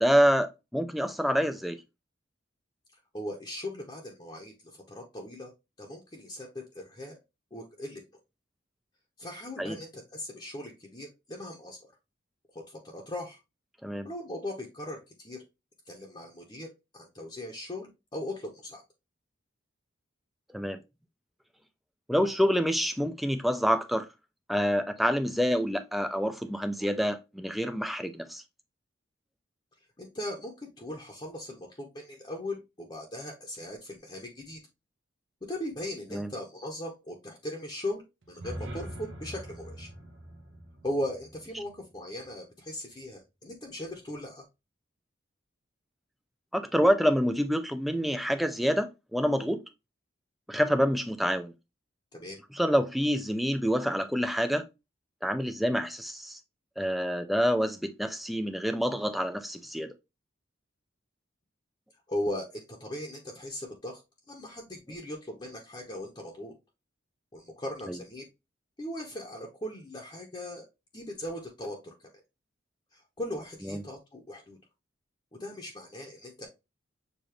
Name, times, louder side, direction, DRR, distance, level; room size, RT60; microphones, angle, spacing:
voice 1, 0.0-1.8 9.6-9.8 13.8-14.1 20.5-20.8 22.1-24.1 24.5-28.4 36.1-36.3 46.5-49.6 50.5-51.5 52.6-54.6 55.2-56.4 56.8-59.9 73.7-73.8, equal, ahead, 0.4 m, -27 dB
voice 2, 3.1-5.5 5.8-7.2 7.5-8.0 9.2-11.8 12.5-13.4 14.0-15.4 15.9-18.8 26.8-26.9 30.0-34.6 35.4-38.0 38.3-39.9 40.8-44.4 52.1-52.4 62.1-64.0 64.3-66.5 67.3-68.3 68.8-70.7 70.9-72.2 72.9-74.6 75.4-76.5, left 1 dB, 25° left, 0.9 m, -38 dB
sound 1, 38.2-42.3, right 1 dB, 75° right, 0.9 m, -43 dB
6.8 x 2.5 x 3.0 m
head